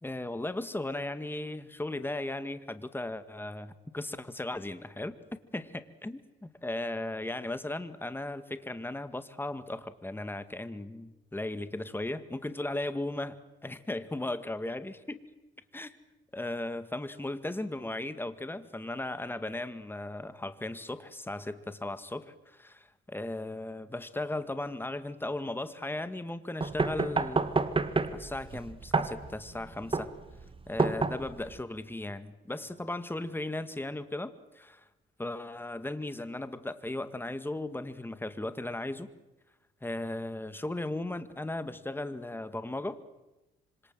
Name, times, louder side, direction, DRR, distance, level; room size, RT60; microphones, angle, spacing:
voice 1, 0.0-5.2 5.5-15.2 15.7-15.9 16.3-27.5 28.1-30.1 30.7-34.8 35.2-39.1 39.8-43.0, left 2 dB, 10° left, 12 dB, 2.0 m, -36 dB
sound 1, 26.6-31.6, right 3 dB, 25° right, 2.0 m, -29 dB
26.5 x 25.5 x 7.8 m, 1.0 s
cardioid pair, 90°, 20 cm